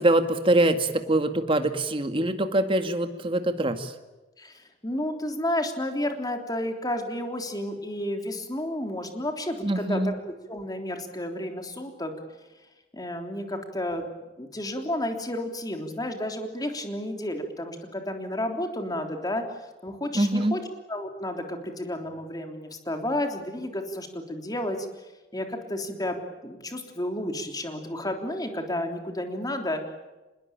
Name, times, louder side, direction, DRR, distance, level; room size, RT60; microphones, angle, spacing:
voice 1, 0.0-3.9 9.6-10.1 20.1-20.6, right 1 dB, 30° right, 7 dB, 2.1 m, -24 dB
voice 2, 4.4-10.1 10.5-12.1 12.9-14.1 14.4-19.4 19.8-20.6 20.9-24.9 25.3-26.2 26.4-29.8, left 1 dB, 20° left, 4 dB, 3.5 m, -31 dB
26.5 x 21.0 x 8.9 m, 1.1 s
head